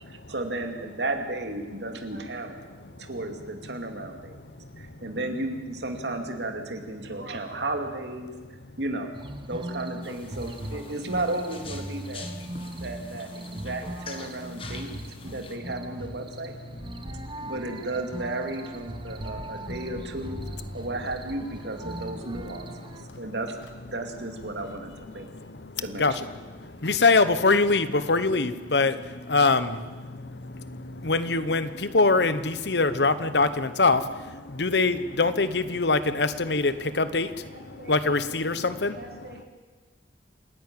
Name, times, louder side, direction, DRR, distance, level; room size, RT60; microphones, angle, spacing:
voice 1, 0.1-2.6 3.0-4.4 4.8-8.3 8.8-9.1 9.5-12.3 12.7-14.9 15.2-16.5 17.4-20.4 20.7-22.7 23.2-23.6 23.9-25.3 25.8-26.1 27.0-27.2, right 2 dB, 75° right, 5 dB, 2.5 m, -33 dB
sound 1, 9.1-23.0, right 1 dB, 25° right, 1.1 m, -39 dB
sound 2, 10.0-15.6, left 4 dB, 30° left, 1.6 m, -45 dB
sound 3, 18.7-23.2 23.6-26.5 27.3-27.8, left 1 dB, 90° left, 1.7 m, -47 dB
voice 2, 26.8-28.9 29.3-29.7 31.0-31.7 31.9-34.0 34.6-37.3 37.9-38.9, left 3 dB, 70° left, 13 dB, 1.1 m, -22 dB
voice 3, 37.4-38.3 38.8-39.5, right 2 dB, 60° right, 2 dB, 3.4 m, -47 dB
27.5 x 11.0 x 9.0 m, 1.3 s
head